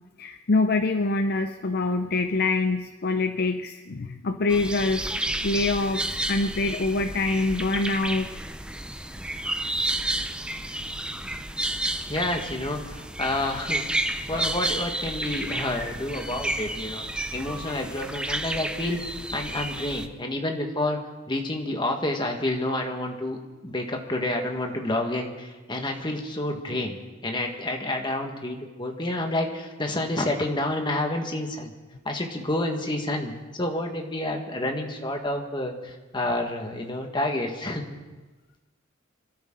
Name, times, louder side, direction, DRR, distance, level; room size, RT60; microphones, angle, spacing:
voice 1, 0.2-5.1 5.4-8.3, left 3 dB, 50° left, 7 dB, 0.6 m, -25 dB
sound 1, 4.5-20.1, right 1 dB, 5° right, 0.6 m, -31 dB
voice 2, 12.1-17.0 17.3-21.0 21.3-27.0 27.2-31.7 32.0-37.8, left 1 dB, 25° left, 3 dB, 1.6 m, -29 dB
24.5 x 13.0 x 3.9 m, 1.2 s
head